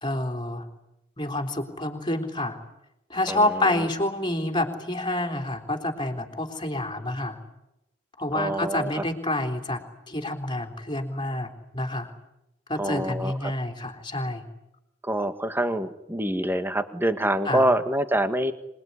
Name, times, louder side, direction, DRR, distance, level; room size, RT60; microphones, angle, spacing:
voice 1, 0.0-0.6 1.2-2.6 3.1-7.4 8.2-9.8 10.1-12.1 12.7-14.4 17.5-17.6, left 1 dB, 25° left, 4 dB, 3.6 m, -28 dB
voice 2, 3.3-3.9 8.3-9.0 12.8-13.5 15.0-18.5, right 1 dB, 10° right, 10 dB, 1.6 m, -26 dB
26.5 x 20.5 x 9.8 m, 0.91 s
head